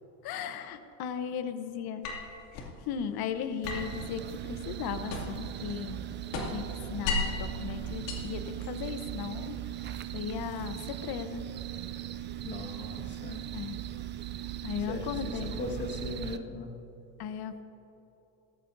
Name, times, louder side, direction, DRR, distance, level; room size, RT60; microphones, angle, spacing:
voice 1, 0.2-2.2 2.5-6.0 6.3-9.6 10.1-11.4 13.5-13.8 14.6-15.6 17.2-17.6, left 8 dB, 50° left, 10 dB, 1.0 m, -37 dB
sound 1, 2.0-2.8 3.6-5.5 5.8-7.5 7.9-9.0, left 4 dB, 80° left, 2.6 m, -35 dB
sound 2, 3.6-16.4, right 11 dB, 25° right, 0.3 m, -38 dB
voice 2, 12.4-13.4 14.9-16.7, left 3 dB, 25° left, 1 dB, 1.7 m, -39 dB
17.5 x 15.0 x 2.7 m, 3.0 s
supercardioid pair, 110°, 48 cm